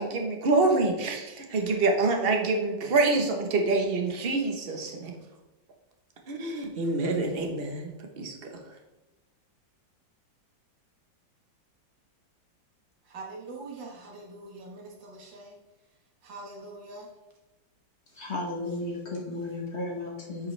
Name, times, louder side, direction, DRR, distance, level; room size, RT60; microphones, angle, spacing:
voice 1, 0.0-5.1 6.3-7.9 8.2-8.5, right 3 dB, 40° right, 3 dB, 1.0 m, -26 dB
voice 2, 13.1-15.5 16.2-17.1, right 3 dB, 75° right, -1 dB, 2.2 m, -43 dB
voice 3, 18.2-20.5, left 2 dB, 45° left, -1 dB, 1.2 m, -34 dB
9.6 x 5.3 x 3.3 m, 1.1 s
omnidirectional pair, 2.0 m